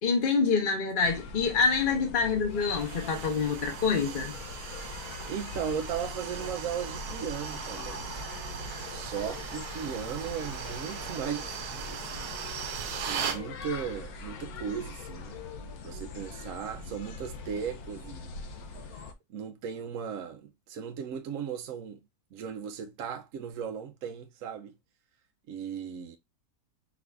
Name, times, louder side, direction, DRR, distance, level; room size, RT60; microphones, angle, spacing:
voice 1, 0.0-4.3, left 5 dB, 40° left, 1.0 m, -26 dB
sound 1, 1.0-19.1, left 4 dB, 75° left, 1.2 m, -42 dB
sound 2, 2.6-13.4, right 7 dB, 85° right, 1.2 m, -39 dB
voice 2, 5.3-8.1 8.9-12.3 13.1-15.4 15.8-18.3 19.3-22.0 22.3-24.7 25.5-26.2, right 7 dB, 65° right, 0.9 m, -37 dB
4.8 x 2.5 x 3.4 m
omnidirectional pair, 1.6 m